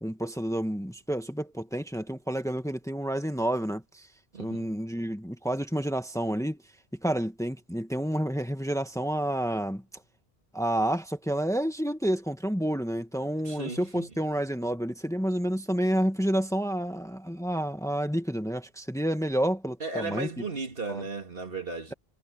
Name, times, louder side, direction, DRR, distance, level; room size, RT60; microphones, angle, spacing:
voice 1, 0.0-4.1 4.4-6.6 7.0-9.8 10.5-20.3 20.9-21.0, right 1 dB, 5° left, 1.7 m, -29 dB
voice 2, 4.3-4.7 13.4-14.1 19.8-21.9, right 3 dB, 65° right, 2.5 m, -35 dB
omnidirectional pair, 1.0 m